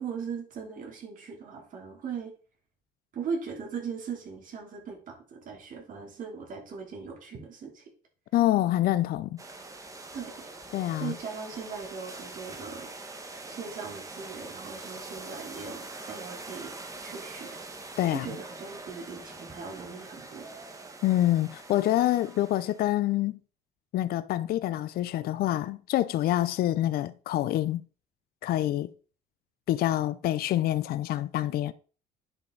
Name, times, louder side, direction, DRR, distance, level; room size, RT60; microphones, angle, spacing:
voice 1, 0.0-2.3 3.1-7.9 10.1-10.5 11.0-12.9 13.4-16.7 17.0-17.6 18.1-20.6, right 6 dB, 50° right, 3.1 m, -39 dB
voice 2, 8.3-9.4 10.7-11.1 18.0-18.3 21.0-23.4 23.9-27.8 28.4-28.9 29.7-31.7, left 14 dB, 65° left, 0.5 m, -26 dB
sound 1, 9.4-22.9, right 3 dB, 20° right, 1.4 m, -44 dB
9.8 x 5.2 x 3.9 m
cardioid pair, 110°, 17 cm